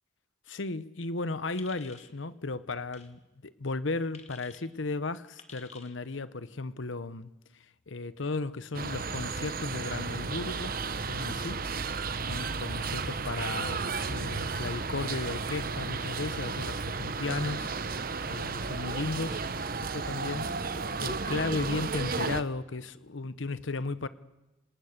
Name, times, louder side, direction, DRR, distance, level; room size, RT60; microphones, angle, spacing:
voice 1, 0.5-11.6 12.2-19.4 19.8-20.5 21.0-24.1, left 3 dB, 85° left, 0.9 m, -35 dB
sound 1, 1.6-2.1 2.9-3.1 4.1-4.6 5.4-5.9, left 5 dB, 35° left, 2.4 m, -51 dB
sound 2, 8.7-22.4, right 4 dB, 50° right, 1.1 m, -33 dB
29.0 x 19.0 x 6.7 m
head